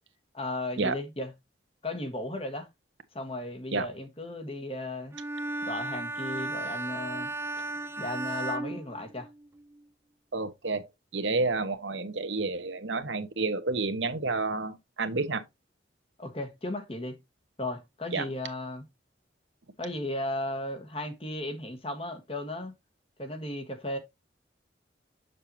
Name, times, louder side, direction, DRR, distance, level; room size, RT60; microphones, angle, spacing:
voice 1, 0.3-1.3 1.8-2.7 3.1-5.1 5.6-7.3 8.0-9.3 16.2-17.2 17.6-18.8 19.8-22.7 23.2-24.0, left 1 dB, 30° left, 1.4 m, -35 dB
Bowed string instrument, 5.1-9.6, right 2 dB, 15° right, 0.5 m, -35 dB
voice 2, 10.3-10.9 11.1-15.4 18.1-18.2, right 3 dB, 80° right, 1.2 m, -30 dB
7.4 x 6.7 x 2.8 m
head